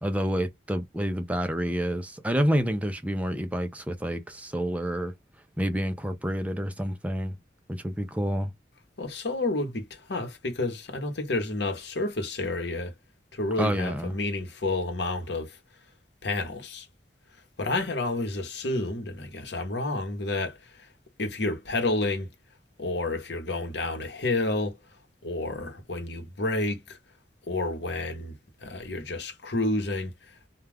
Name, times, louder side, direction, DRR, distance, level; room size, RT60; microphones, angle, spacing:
voice 1, 0.0-5.1 5.6-7.3 7.7-8.5 13.6-14.2, equal, 10° right, 0.4 m, -28 dB
voice 2, 9.0-12.9 13.3-15.6 16.2-16.9 17.6-20.9 21.2-22.3 22.8-24.8 25.2-27.0 27.5-28.3 28.6-30.5, left 2 dB, 65° left, 0.9 m, -30 dB
2.3 x 2.2 x 3.3 m
head